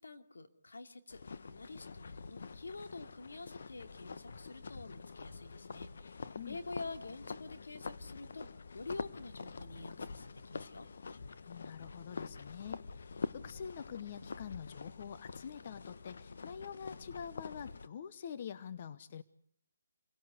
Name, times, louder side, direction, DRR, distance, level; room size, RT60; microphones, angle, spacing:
voice 1, 0.0-10.9, left 3 dB, 80° left, 6 dB, 2.8 m, -48 dB
sound 1, 1.1-17.9, left 4 dB, 65° left, 1.2 m, -46 dB
voice 2, 11.5-19.2, left 7 dB, 40° left, 13 dB, 0.9 m, -46 dB
27.5 x 17.5 x 8.2 m, 0.67 s
hypercardioid pair, 160°, 0 cm